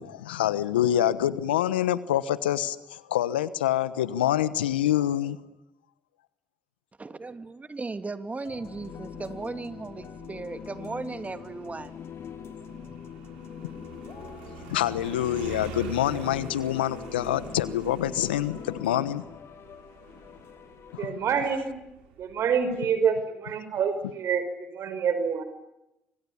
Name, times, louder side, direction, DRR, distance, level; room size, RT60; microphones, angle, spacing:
voice 1, 0.0-5.4 14.7-19.2, left 12 dB, 90° left, 1.1 m, -26 dB
voice 2, 7.0-11.9, right 3 dB, 25° right, 2.8 m, -36 dB
sound 1, 8.4-21.1, left 9 dB, 55° left, 1.1 m, -43 dB
Motorcycle, 8.5-22.8, right 6 dB, 80° right, 5.4 m, -46 dB
voice 3, 21.0-21.9 22.2-25.4, right 6 dB, 60° right, 5.2 m, -27 dB
30.0 x 26.0 x 7.2 m
hypercardioid pair, 50°, 5 cm